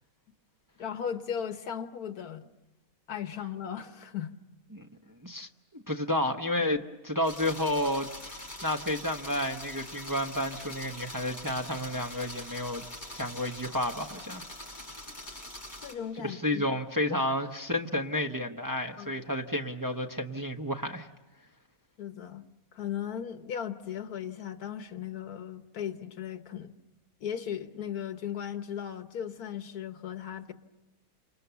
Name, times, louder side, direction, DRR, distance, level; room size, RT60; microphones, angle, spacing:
voice 1, 0.8-2.5 3.1-4.3 15.8-16.6 19.0-19.1 22.0-22.4 22.7-26.7 27.2-30.5, left 8 dB, 80° left, 9 dB, 1.7 m, -37 dB
voice 2, 5.2-12.8 13.1-14.4 16.2-21.1, left 1 dB, 15° right, 3 dB, 1.0 m, -31 dB
sound 1, 7.2-15.9, left 1 dB, 30° left, 6.4 m, -43 dB
29.5 x 27.0 x 7.0 m, 0.99 s
omnidirectional pair, 1.6 m